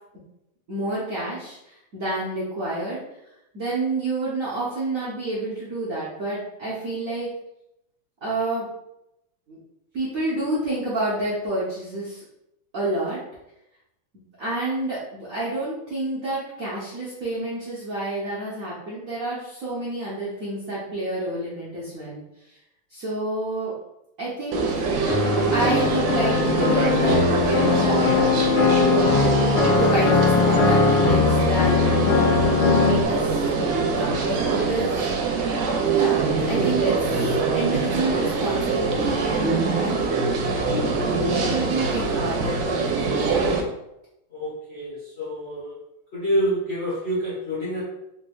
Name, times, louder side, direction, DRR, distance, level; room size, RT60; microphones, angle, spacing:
voice 1, 0.7-3.0 3.5-7.3 8.2-8.7 9.5-9.6 9.9-12.2 12.7-13.2 14.4-22.2 22.5-22.6 22.9-23.7 24.2-24.6 25.5-28.2 29.7-32.3 32.6-35.1 35.9-40.2 41.3-43.2, right 2 dB, 60° right, -9 dB, 0.9 m, -29 dB
sound 1, 24.5-43.6, right 4 dB, 85° right, 1.5 m, -24 dB
sound 2, 25.1-33.1, left 5 dB, 70° left, 1.4 m, -20 dB
voice 2, 44.3-45.7 46.1-47.8, equal, 45° left, -8 dB, 0.9 m, -27 dB
4.0 x 3.2 x 2.3 m, 0.86 s
omnidirectional pair, 2.4 m